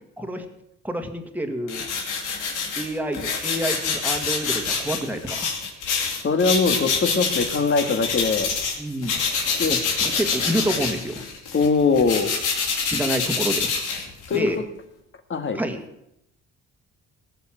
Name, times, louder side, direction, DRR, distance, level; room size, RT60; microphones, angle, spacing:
voice 1, 0.8-1.8 2.8-5.5 8.8-9.2 9.7-11.2 12.8-13.7 14.3-14.6 15.5-15.8, right 1 dB, 5° right, 5 dB, 1.9 m, -28 dB
sound 1, 1.7-8.8 9.0-14.5, left 5 dB, 90° left, 2.8 m, -26 dB
voice 2, 6.2-8.5 9.6-9.8 11.5-12.3 14.3-14.6 15.3-15.6, left 4 dB, 40° left, 7 dB, 1.9 m, -21 dB
18.5 x 7.0 x 7.6 m, 0.80 s
cardioid pair, 90°, 30 cm